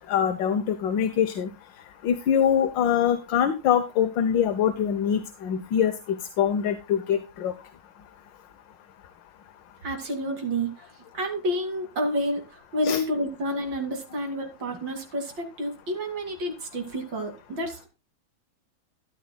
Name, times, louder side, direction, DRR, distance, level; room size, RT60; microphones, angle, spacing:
voice 1, 0.1-1.5 2.0-5.9 6.4-7.5 12.8-13.0, left 8 dB, 70° left, 9 dB, 1.5 m, -24 dB
voice 2, 9.8-10.9 11.1-17.9, equal, 65° right, 4 dB, 3.1 m, -29 dB
13.0 x 11.5 x 2.2 m, 0.28 s
omnidirectional pair, 2.2 m